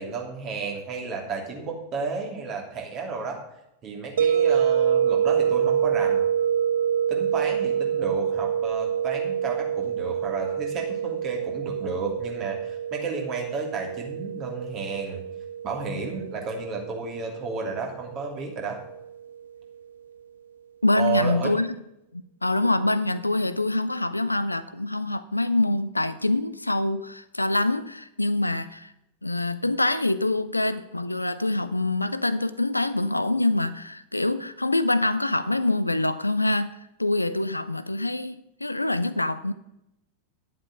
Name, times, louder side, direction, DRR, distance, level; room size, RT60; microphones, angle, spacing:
voice 1, 0.0-3.4 3.8-6.2 7.1-15.2 15.6-18.8 20.9-21.5, right 4 dB, 35° right, 1 dB, 2.9 m, -32 dB
sound 1, 4.2-19.1, right 8 dB, 65° right, 0.3 m, -27 dB
voice 2, 20.8-21.7 22.4-28.9 29.2-39.5, left 2 dB, 85° left, 15 dB, 0.5 m, -25 dB
11.0 x 7.6 x 5.4 m, 0.84 s
figure-of-eight pair, 90°, 0 cm